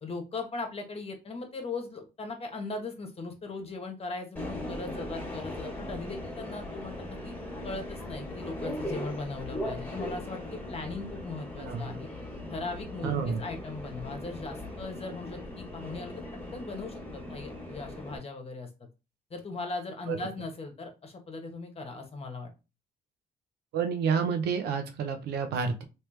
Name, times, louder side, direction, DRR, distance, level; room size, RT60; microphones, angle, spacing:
voice 1, 0.0-7.3 7.6-12.1 12.5-18.7 19.3-22.5, left 3 dB, 35° left, 4 dB, 1.3 m, -39 dB
Subway metro underground, 4.4-18.2, left 1 dB, 10° left, 1.8 m, -39 dB
voice 2, 13.0-13.4 20.1-20.2 23.7-25.8, right 6 dB, 85° right, 7 dB, 0.8 m, -29 dB
3.2 x 3.1 x 3.2 m, 0.29 s
cardioid pair, 85°, 17 cm